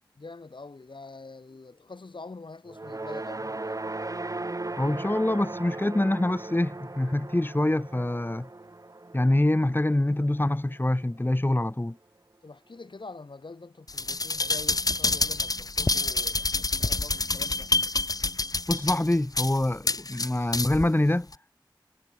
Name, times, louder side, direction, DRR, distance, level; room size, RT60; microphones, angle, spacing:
voice 1, 0.1-3.9 12.4-17.7, left 3 dB, 70° left, 6.2 m, -45 dB
sound 1, 2.7-11.0, right 2 dB, 40° right, 1.4 m, -38 dB
voice 2, 4.8-8.5 9.1-12.0 18.7-21.3, left 1 dB, 25° left, 2.2 m, -25 dB
sound 2, 13.9-20.9 21.3-21.4, left 3 dB, 45° left, 0.9 m, -27 dB
wide cardioid pair, 45°, 9 cm